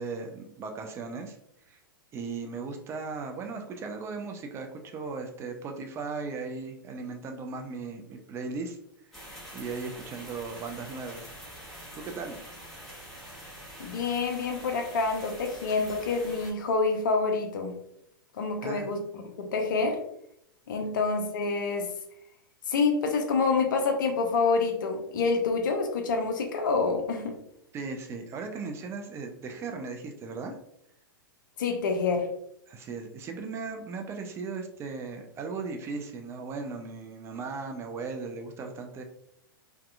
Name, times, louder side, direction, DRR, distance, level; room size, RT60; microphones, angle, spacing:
voice 1, 0.0-1.4 1.7-1.8 2.1-8.8 9.5-11.3 12.0-12.4 18.6-18.9 20.8-20.9 27.7-30.6 32.7-39.0, right 4 dB, 20° right, 4 dB, 0.4 m, -37 dB
sound 1, 9.1-16.5, equal, ahead, 0.9 m, -45 dB
voice 2, 13.8-17.7 18.4-20.0 20.7-21.9 22.7-27.3 31.6-32.3, left 4 dB, 60° left, 4 dB, 0.6 m, -27 dB
2.6 x 2.3 x 2.3 m, 0.73 s
figure-of-eight pair, 105°, 12 cm